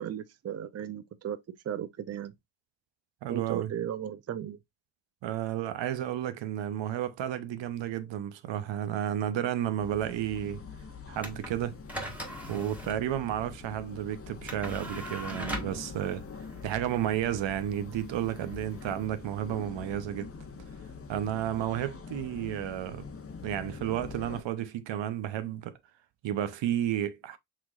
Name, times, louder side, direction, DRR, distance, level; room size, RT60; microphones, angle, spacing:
voice 1, 0.0-1.4 1.6-2.3 3.3-4.6, right 9 dB, 35° right, 0.5 m, -35 dB
voice 2, 3.2-3.7 5.2-10.6 11.1-11.8 12.5-16.2 16.6-20.3 21.1-23.1 23.4-25.8 26.2-27.4, right 11 dB, 70° right, 0.7 m, -32 dB
sound 1, 9.8-24.4, left 5 dB, 30° left, 0.9 m, -44 dB
sound 2, 11.2-19.7, right 1 dB, 5° right, 1.4 m, -42 dB
5.8 x 3.1 x 2.4 m
cardioid pair, 75°, 46 cm